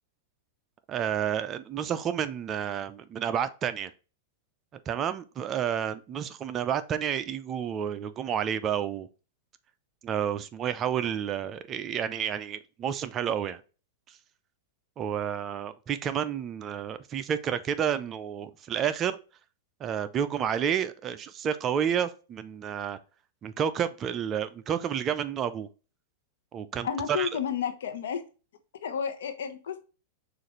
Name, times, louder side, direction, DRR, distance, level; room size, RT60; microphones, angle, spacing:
voice 1, 0.9-3.9 4.9-9.1 10.0-13.6 15.0-19.2 19.8-23.0 23.4-25.7 26.5-27.3, right 8 dB, 30° right, 0.5 m, -30 dB
voice 2, 26.8-28.2 28.8-29.8, left 7 dB, 80° left, 0.9 m, -31 dB
6.3 x 2.5 x 3.0 m
hypercardioid pair, 125°, 0 cm